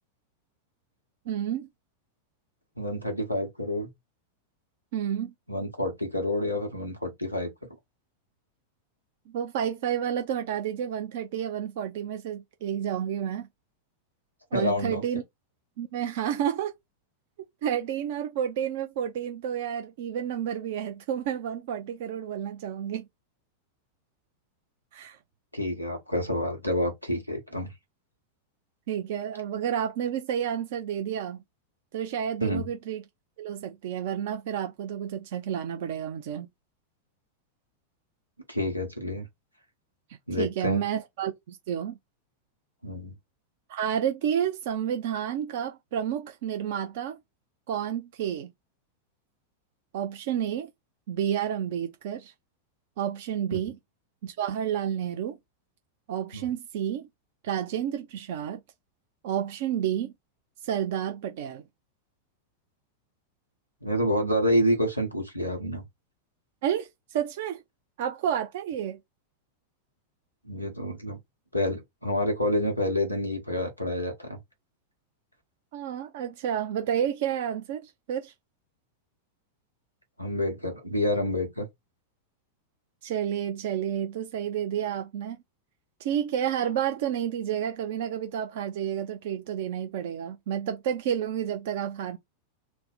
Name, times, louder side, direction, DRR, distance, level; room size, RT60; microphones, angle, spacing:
voice 1, 1.3-1.7 4.9-5.3 9.3-13.5 14.5-15.2 15.8-16.7 17.6-23.0 24.9-25.2 28.9-31.4 31.9-33.0 33.4-36.5 40.4-42.0 43.7-47.2 47.7-48.5 49.9-50.7 51.1-52.3 53.0-53.8 54.2-55.4 56.1-57.1 57.4-58.6 59.2-60.1 60.6-61.6 66.6-67.6 68.0-69.0 75.7-78.3 83.0-85.4 86.0-92.2, right 9 dB, 55° right, 0.4 m, -30 dB
voice 2, 2.8-3.9 5.5-7.5 14.5-15.0 25.5-27.7 32.4-32.7 38.5-39.3 40.3-40.8 42.8-43.1 53.5-53.6 56.3-56.5 63.8-65.8 70.4-71.2 71.5-74.4 80.2-81.7, left 1 dB, 90° right, 1.0 m, -28 dB
3.2 x 2.0 x 4.0 m
figure-of-eight pair, 90°, 0 cm